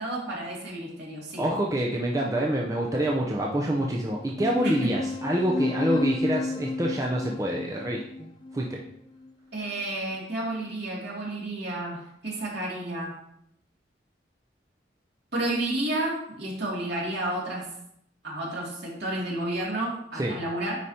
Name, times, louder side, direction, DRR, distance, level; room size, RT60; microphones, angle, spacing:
voice 1, 0.0-1.4 4.6-4.9 9.5-13.2 15.3-17.7 18.2-20.8, right 1 dB, 60° right, -5 dB, 2.6 m, -31 dB
voice 2, 1.4-8.8 20.2-20.3, right 1 dB, 20° right, -2 dB, 0.6 m, -27 dB
sound 1, 4.4-9.3, left 2 dB, 25° left, 0.4 m, -31 dB
9.6 x 4.9 x 2.9 m, 0.72 s
head